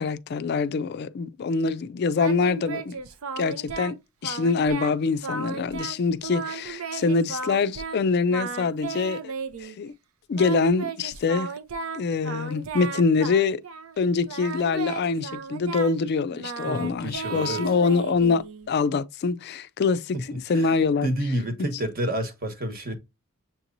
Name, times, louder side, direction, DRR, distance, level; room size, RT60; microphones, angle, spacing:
voice 1, 0.0-3.0 3.4-4.0 4.2-9.3 9.6-9.9 10.3-11.5 11.9-13.6 14.0-21.1, left 4 dB, 50° left, 0.3 m, -24 dB
Singing, 2.1-4.0 4.2-5.0 5.2-8.0 8.3-9.8 10.4-14.0 14.3-18.7, right 5 dB, 85° right, 0.6 m, -35 dB
voice 2, 16.6-17.6 20.1-20.2 20.5-20.7 21.0-22.9, right 1 dB, 45° right, 1.1 m, -29 dB
7.1 x 2.9 x 2.5 m
head